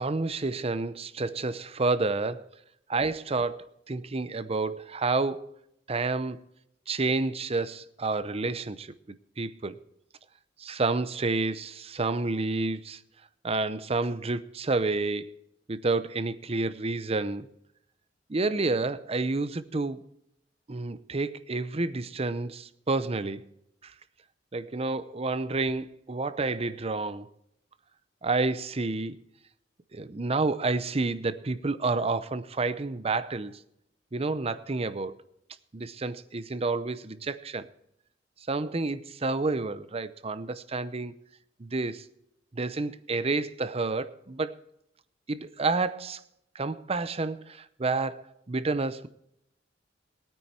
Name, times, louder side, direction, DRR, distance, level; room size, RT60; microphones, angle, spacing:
voice 1, 0.0-2.5 2.9-5.5 5.9-6.4 6.9-9.8 10.6-13.0 13.4-15.4 15.7-17.5 18.3-20.0 20.7-23.5 23.8-23.9 24.5-27.3 28.2-29.2 29.9-33.6 34.1-35.2 35.7-37.7 38.5-41.1 41.6-42.0 42.5-44.6 45.3-46.2 46.5-49.1, right 3 dB, 30° right, 0.7 m, -29 dB
20.0 x 9.2 x 4.3 m
head